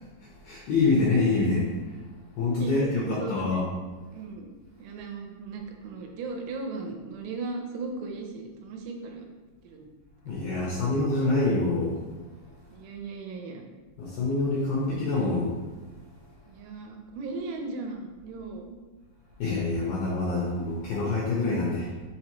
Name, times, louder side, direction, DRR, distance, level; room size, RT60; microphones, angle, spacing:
voice 1, 0.4-1.7 2.4-3.6 10.3-12.0 14.0-15.5 19.4-21.9, left 3 dB, 85° left, -5 dB, 2.1 m, -26 dB
voice 2, 2.6-3.6 4.1-4.5 4.8-9.3 9.6-9.9 12.7-13.7 16.5-18.8 21.7-22.0, right 3 dB, 85° right, 2 dB, 3.2 m, -37 dB
7.0 x 4.6 x 3.0 m, 1.3 s
omnidirectional pair, 5.4 m